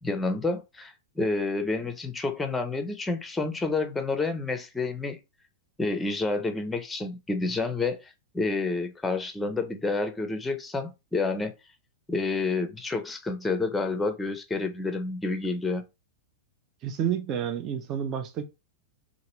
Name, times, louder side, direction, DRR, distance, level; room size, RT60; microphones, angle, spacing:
voice 1, 0.0-5.2 5.8-11.5 12.1-15.8, left 3 dB, 10° left, 0.6 m, -29 dB
voice 2, 16.8-18.4, right 9 dB, 35° right, 0.5 m, -29 dB
2.8 x 2.5 x 3.0 m
figure-of-eight pair, 100°, 0 cm